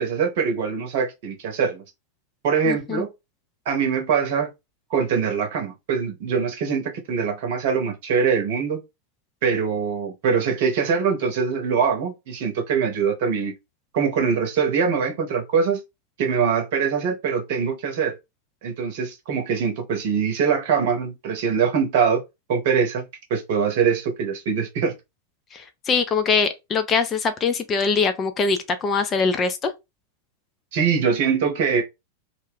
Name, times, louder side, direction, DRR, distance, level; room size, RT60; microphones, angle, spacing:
voice 1, 0.0-1.8 2.4-3.1 3.7-4.5 4.9-8.8 9.4-13.5 13.9-15.8 16.2-18.2 18.6-22.2 22.5-24.9 30.7-31.8, right 6 dB, 50° right, 0.8 m, -23 dB
voice 2, 2.7-3.1 25.5-29.7, left 5 dB, 25° left, 0.4 m, -23 dB
2.4 x 2.1 x 3.4 m
figure-of-eight pair, 90°, 0 cm